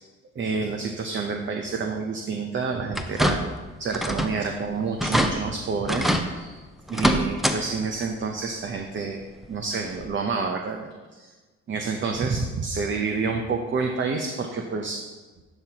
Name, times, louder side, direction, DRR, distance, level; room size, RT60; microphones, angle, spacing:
voice 1, 0.4-3.4 3.8-6.6 6.9-9.2 9.5-11.3 11.7-15.0, right 4 dB, 40° right, 3 dB, 0.8 m, -28 dB
sound 1, 2.9-3.6 3.9-4.4 4.7-4.8 5.0-5.3 5.9-6.3 6.9-7.6 7.9-8.0 9.4-9.5 10.0-10.1, equal, ahead, 0.7 m, -24 dB
11.0 x 6.2 x 2.9 m, 1.3 s
cardioid pair, 90°, 30 cm